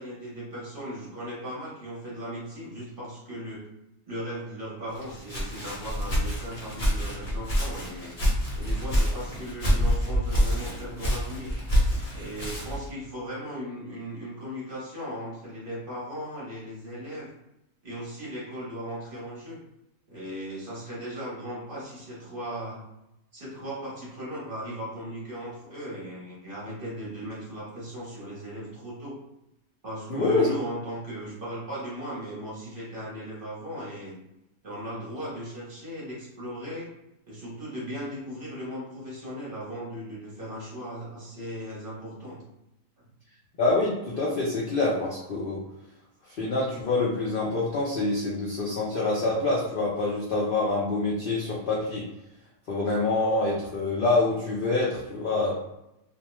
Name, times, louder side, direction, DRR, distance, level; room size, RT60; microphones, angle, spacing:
voice 1, 0.0-3.6 4.1-8.1 8.5-11.5 12.1-17.3 17.8-19.6 20.1-22.8 23.3-29.2 29.8-34.2 34.6-36.9 37.3-42.4, equal, 45° right, -6 dB, 0.9 m, -37 dB
Walk footsteps, 4.9-12.9, equal, 40° left, 0.8 m, -27 dB
voice 2, 30.1-30.5 43.6-45.6 46.4-52.0 52.7-55.6, left 2 dB, 80° left, -5 dB, 0.4 m, -26 dB
2.5 x 2.1 x 3.0 m, 0.87 s
omnidirectional pair, 1.6 m